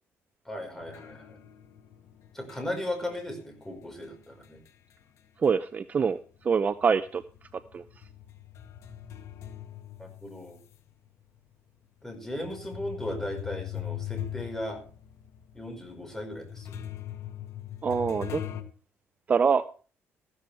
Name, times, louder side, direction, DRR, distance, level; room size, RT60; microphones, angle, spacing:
voice 1, 0.4-1.4 2.3-4.6 10.0-10.6 12.0-14.8 15.5-16.7, left 1 dB, 10° left, 4 dB, 5.0 m, -36 dB
sound 1, 0.8-5.8 6.1-10.8 11.4-11.5 12.2-18.6, left 11 dB, 70° left, 1.6 m, -41 dB
voice 2, 5.4-7.2 7.5-7.8 17.8-18.4 19.3-19.6, right 6 dB, 30° right, 12 dB, 0.6 m, -25 dB
14.5 x 13.0 x 3.4 m, 0.38 s
cardioid pair, 135°, 5 cm